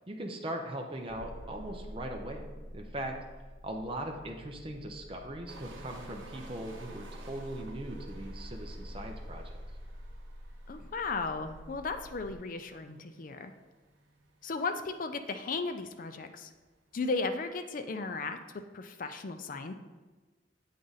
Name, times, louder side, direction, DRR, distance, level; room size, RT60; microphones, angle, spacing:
voice 1, 0.1-2.5 2.7-3.1 3.6-9.4, right 1 dB, 30° right, 2 dB, 0.6 m, -40 dB
sound 1, 1.1-12.4, equal, 70° left, 1.1 m, -47 dB
sound 2, 5.5-17.5, right 3 dB, 90° right, 0.8 m, -56 dB
voice 2, 10.7-13.5 14.4-16.5 16.9-18.4 18.7-19.7, left 3 dB, 45° left, 8 dB, 0.4 m, -35 dB
8.2 x 3.7 x 4.0 m, 1.3 s
head